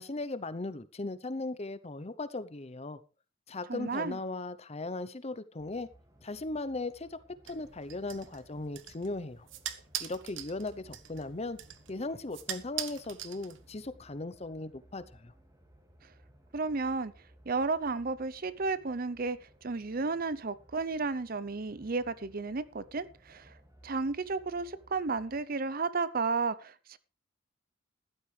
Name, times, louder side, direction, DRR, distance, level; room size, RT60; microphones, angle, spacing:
voice 1, 0.0-3.0 3.5-5.9 6.2-7.2 7.4-9.5 10.0-11.6 11.9-15.3, left 2 dB, 30° left, 15 dB, 0.7 m, -38 dB
voice 2, 3.7-4.2 16.5-17.1 17.5-23.6 23.8-27.0, right 4 dB, 50° right, 17 dB, 0.7 m, -33 dB
sound 1, 5.6-25.4, equal, 15° right, 2.1 m, -61 dB
sound 2, 7.5-13.9, right 11 dB, 70° right, 1.2 m, -43 dB
14.5 x 12.0 x 3.3 m, 0.31 s
head